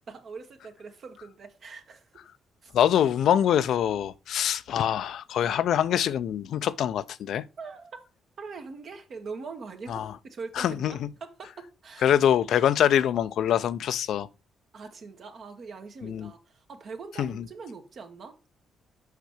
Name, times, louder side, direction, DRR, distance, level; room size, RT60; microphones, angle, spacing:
voice 1, 0.1-2.2 2.6-2.7 7.6-8.0 8.4-12.1 14.7-18.3, right 4 dB, 55° right, 1.6 m, -42 dB
voice 2, 2.7-7.5 9.9-10.1 10.6-11.1 12.0-14.3 16.0-16.3 17.2-17.4, left 10 dB, 70° left, 0.5 m, -24 dB
6.5 x 5.7 x 4.9 m
cardioid pair, 90°, 0 cm